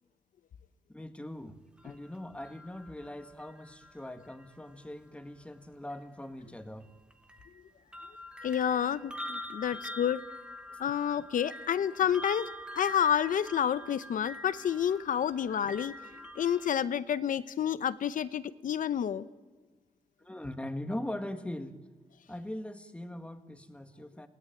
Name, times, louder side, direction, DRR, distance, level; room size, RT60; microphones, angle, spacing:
voice 1, 0.9-6.9 20.2-21.8 22.3-24.3, left 1 dB, 10° left, 8 dB, 1.7 m, -41 dB
sound 1, 1.8-4.9 5.9-6.0 6.8-16.7, equal, 5° right, 1.4 m, -45 dB
voice 2, 8.4-10.2 10.8-12.5 12.7-15.9 16.4-19.3, left 9 dB, 85° left, 15 dB, 0.9 m, -29 dB
30.0 x 17.5 x 9.1 m, 1.3 s
wide cardioid pair, 130°, 13 cm